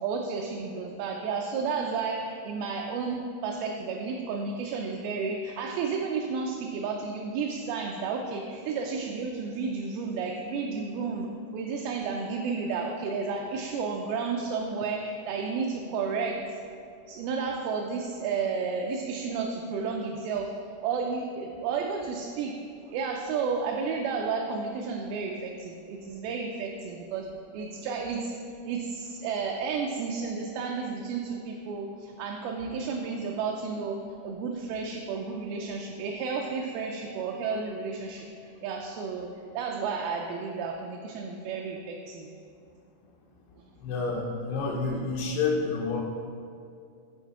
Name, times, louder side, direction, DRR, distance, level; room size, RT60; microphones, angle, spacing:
voice 1, 0.0-11.3 11.5-16.6 17.1-20.5 20.8-22.6 22.9-28.4 28.7-39.3 39.5-42.3, right 5 dB, 85° right, 1 dB, 2.2 m, -32 dB
voice 2, 43.8-46.0, left 4 dB, 80° left, -1 dB, 2.6 m, -29 dB
9.0 x 3.5 x 4.7 m, 2.4 s
omnidirectional pair, 4.6 m